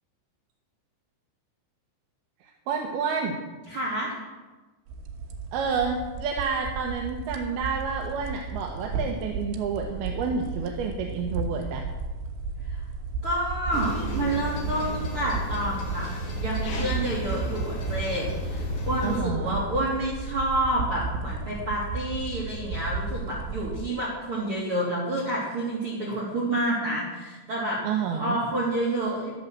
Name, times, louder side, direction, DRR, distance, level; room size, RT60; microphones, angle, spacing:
voice 1, 2.4-3.5 5.5-11.8 19.0-19.6 27.8-28.4, right 5 dB, 70° right, 2 dB, 2.7 m, -29 dB
voice 2, 3.7-4.2 12.7-12.8 13.2-16.1 16.4-27.8 28.1-29.3, right 1 dB, 35° right, -4 dB, 3.1 m, -29 dB
sound 1, 4.9-23.9, right 3 dB, 85° right, 3.8 m, -34 dB
sound 2, 13.7-19.2, equal, 55° left, 4.2 m, -33 dB
12.0 x 12.0 x 7.5 m, 1.2 s
omnidirectional pair, 5.3 m